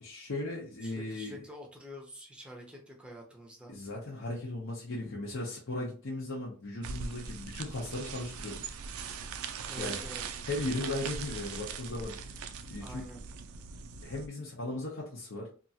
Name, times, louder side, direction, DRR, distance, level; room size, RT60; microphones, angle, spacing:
voice 1, 0.0-1.4 3.7-8.6 9.8-12.2 12.7-13.0 14.0-15.5, left 2 dB, 60° left, -4 dB, 0.7 m, -37 dB
voice 2, 0.8-3.7 9.7-10.2 12.8-13.2, equal, 5° right, 1 dB, 0.6 m, -47 dB
sound 1, 6.8-14.3, right 6 dB, 80° right, 0.4 m, -41 dB
2.9 x 2.4 x 2.7 m, 0.39 s
head